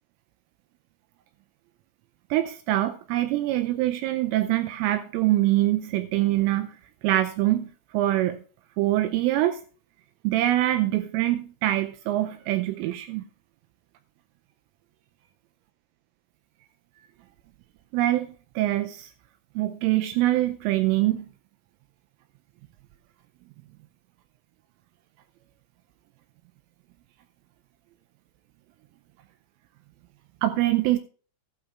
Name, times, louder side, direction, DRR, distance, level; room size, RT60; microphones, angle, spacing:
voice 1, 2.3-6.8 7.0-7.7 7.9-8.4 8.8-9.6 10.2-13.2 17.9-18.3 18.6-19.1 19.6-21.3 30.4-31.0, right 15 dB, 85° right, 3.1 m, -24 dB
15.5 x 11.5 x 2.4 m
omnidirectional pair, 5.9 m